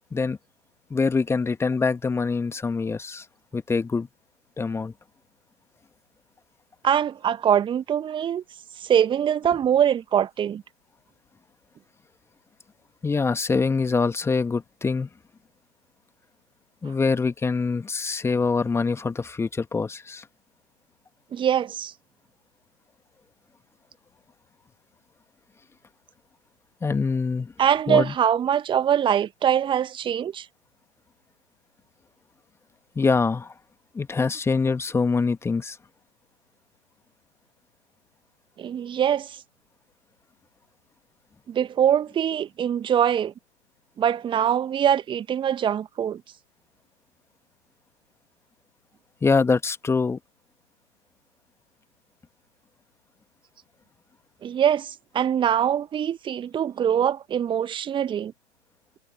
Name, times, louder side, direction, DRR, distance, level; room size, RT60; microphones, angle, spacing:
voice 1, 0.9-3.3 3.5-4.1 4.6-4.9 13.0-15.1 16.8-20.2 26.8-27.5 27.9-28.1 33.0-33.5 33.9-35.8 49.2-50.2, left 4 dB, 5° left, 2.0 m, -24 dB
voice 2, 6.8-8.4 8.8-10.6 21.3-21.9 27.6-30.5 38.6-39.4 41.5-43.3 44.0-46.2 54.4-58.3, right 9 dB, 15° right, 1.7 m, -23 dB
figure-of-eight pair, 115°, 36 cm